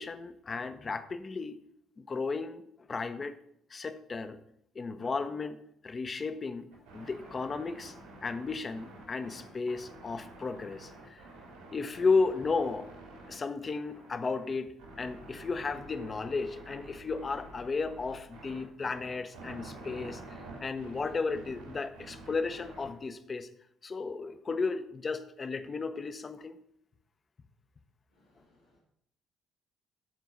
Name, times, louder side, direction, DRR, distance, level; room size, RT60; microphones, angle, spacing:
voice 1, 0.0-1.6 2.0-2.6 2.9-3.3 3.7-4.4 4.7-5.6 5.8-7.9 8.2-11.2 11.7-12.9 13.3-23.5 23.8-26.6, left 4 dB, 35° left, 11 dB, 0.7 m, -34 dB
sound 1, 6.7-22.9, right 2 dB, 85° right, 2.7 m, -49 dB
voice 2, 28.1-28.8, left 2 dB, 85° left, -7 dB, 2.1 m, -67 dB
13.5 x 4.6 x 5.4 m, 0.75 s
figure-of-eight pair, 50°, 0 cm